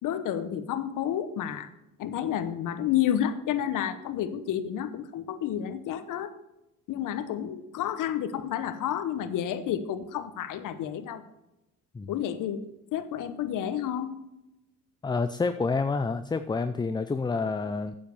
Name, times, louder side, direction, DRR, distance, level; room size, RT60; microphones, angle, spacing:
voice 1, 0.0-1.7 2.0-6.3 6.9-11.2 12.1-12.6 12.9-14.2, left 10 dB, 70° left, 11 dB, 1.0 m, -30 dB
voice 2, 15.0-18.0, left 4 dB, 15° left, 10 dB, 0.4 m, -28 dB
9.3 x 7.4 x 5.3 m, 0.92 s
supercardioid pair, 85°, 33 cm